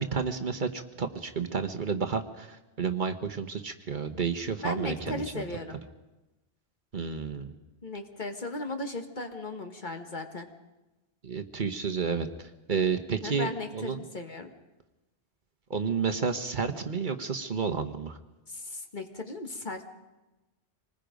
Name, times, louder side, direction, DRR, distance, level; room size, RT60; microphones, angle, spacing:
voice 1, 0.0-5.4 6.9-7.5 11.2-12.3 12.7-14.0 15.7-18.2, right 5 dB, 50° right, 6 dB, 1.2 m, -31 dB
voice 2, 4.6-5.8 7.8-10.5 13.2-14.5 18.5-19.8, left 2 dB, 45° left, 5 dB, 1.8 m, -36 dB
26.0 x 20.0 x 5.2 m, 1.1 s
omnidirectional pair, 1.1 m